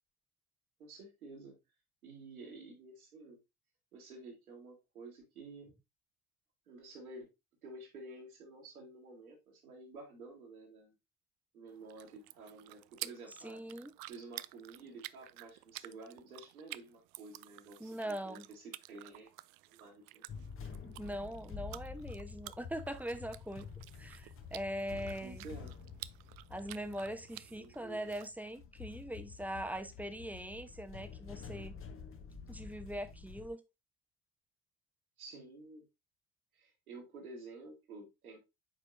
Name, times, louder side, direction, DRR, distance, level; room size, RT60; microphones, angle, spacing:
voice 1, 0.8-1.6 2.0-3.4 3.9-5.7 6.7-7.3 7.6-10.9 11.5-13.6 14.1-19.3 19.7-20.2 25.2-25.7 27.6-28.2 35.2-35.8 36.5-38.4, right 3 dB, 80° right, 2.9 m, -51 dB
sound 1, 11.7-28.3, right 19 dB, 55° right, 0.5 m, -51 dB
voice 2, 13.4-13.9 17.8-18.4 20.8-23.7 24.0-25.4 26.5-31.7 32.5-33.6, equal, 5° right, 1.0 m, -41 dB
sound 2, 20.3-33.5, left 6 dB, 30° left, 1.1 m, -49 dB
8.9 x 4.9 x 2.6 m
figure-of-eight pair, 60°, 42 cm